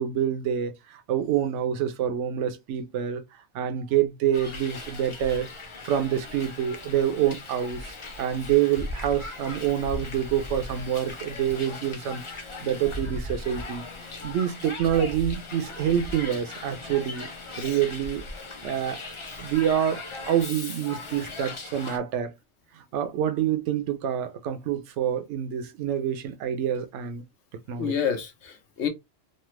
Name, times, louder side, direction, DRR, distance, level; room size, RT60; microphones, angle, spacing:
voice 1, 0.0-3.2 3.5-5.5 5.8-7.9 8.2-13.8 14.2-17.3 17.6-18.2 18.6-19.0 19.4-22.3 22.7-27.2 27.7-27.9, right 10 dB, 75° right, 0.9 m, -27 dB
Hiss, 4.3-22.0, left 2 dB, 40° left, 0.4 m, -38 dB
voice 2, 27.8-28.9, left 8 dB, 70° left, 1.0 m, -29 dB
3.2 x 2.0 x 3.1 m
omnidirectional pair, 1.3 m